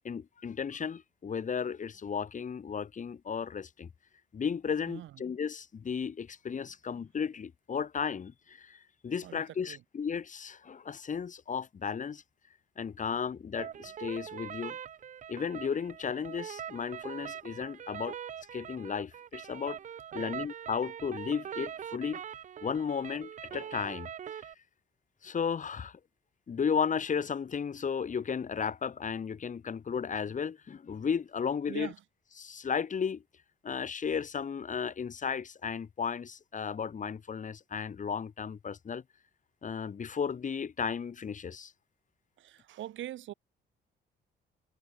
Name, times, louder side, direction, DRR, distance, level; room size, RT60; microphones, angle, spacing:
voice 1, 0.0-3.9 4.3-12.2 12.8-14.8 15.3-18.2 18.5-19.8 20.1-22.2 22.6-24.1 25.2-26.0 26.5-31.9 32.4-33.2 33.6-39.0 39.6-41.7, left 6 dB, 40° left, 1.4 m, -34 dB
voice 2, 4.9-5.2 9.2-9.8 20.1-20.3 31.7-32.0 42.4-43.3, right 13 dB, 75° right, 1.0 m, -43 dB
sound 1, 13.5-24.5, right 9 dB, 40° right, 0.4 m, -43 dB
cardioid pair, 90°, 20 cm